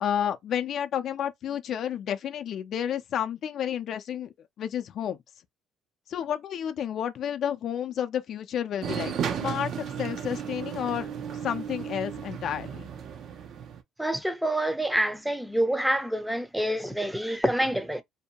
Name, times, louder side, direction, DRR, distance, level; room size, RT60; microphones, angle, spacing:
voice 1, 0.0-4.3 4.6-5.2 6.1-11.1 11.4-12.9, left 9 dB, 55° left, 0.4 m, -31 dB
sound 1, 8.8-13.8, right 8 dB, 55° right, 0.5 m, -34 dB
voice 2, 14.0-18.0, right 1 dB, 5° right, 0.5 m, -27 dB
2.6 x 2.1 x 2.8 m
cardioid pair, 100°, 0 cm